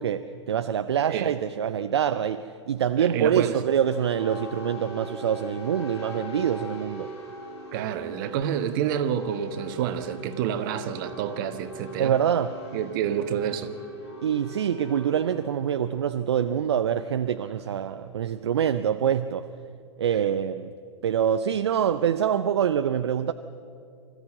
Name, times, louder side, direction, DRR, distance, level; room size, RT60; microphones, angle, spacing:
voice 1, 0.0-7.1 12.0-12.6 14.2-19.4 20.0-20.7 21.0-23.3, right 9 dB, 65° right, 10 dB, 0.6 m, -25 dB
voice 2, 3.0-3.6 7.7-12.2 12.7-13.7, right 9 dB, 45° right, 10 dB, 1.4 m, -28 dB
sound 1, 3.9-18.1, equal, 65° left, 7.6 m, -42 dB
25.0 x 14.5 x 7.7 m, 2.5 s
figure-of-eight pair, 95°, 15 cm